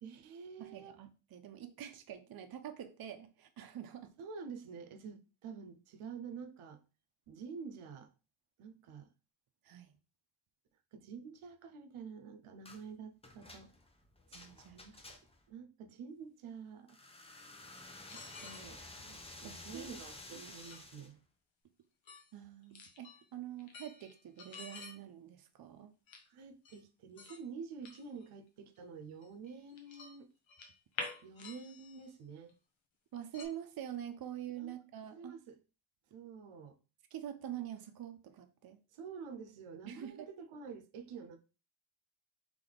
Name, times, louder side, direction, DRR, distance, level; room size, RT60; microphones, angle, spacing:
voice 1, 0.0-1.0 4.2-6.8 7.3-8.1 8.6-9.1 10.9-13.7 14.7-14.9 15.5-17.0 18.1-18.8 19.4-21.2 26.3-30.3 31.2-32.6 34.6-34.7 35.1-35.6 36.1-36.8 38.9-41.4, right 5 dB, 90° right, 0.7 m, -48 dB
voice 2, 0.6-4.1 9.6-10.0 14.3-14.8 15.1-15.2 19.1-19.9 20.3-20.5 22.3-25.9 33.1-35.3 37.1-38.8 39.9-40.3, right 10 dB, 50° right, 0.6 m, -46 dB
sound 1, 12.6-12.8 13.2-15.5 16.9-21.1, left 2 dB, 15° left, 0.5 m, -52 dB
sound 2, 17.7-18.7 20.6-20.8 22.1-22.3 22.6-23.2 23.6-25.0 26.1-26.2 26.7-26.8 27.2-27.4 27.8-28.3 28.8-28.9 29.2-30.1 30.5-32.1 32.5-32.6 33.3-33.5, left 4 dB, 70° left, 1.0 m, -48 dB
3.3 x 3.3 x 4.0 m
wide cardioid pair, 145°, 48 cm